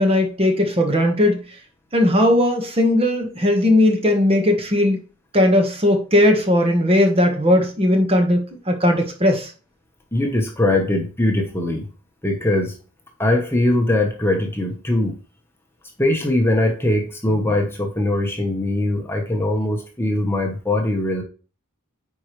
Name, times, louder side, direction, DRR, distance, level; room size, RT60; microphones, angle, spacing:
voice 1, 0.0-1.4 1.9-5.0 5.3-9.5, left 1 dB, 25° right, 3 dB, 1.4 m, -17 dB
voice 2, 10.1-11.9 12.2-12.8 13.2-15.2 16.0-21.2, left 1 dB, 10° left, 2 dB, 1.1 m, -21 dB
9.4 x 4.7 x 3.2 m, 0.35 s
head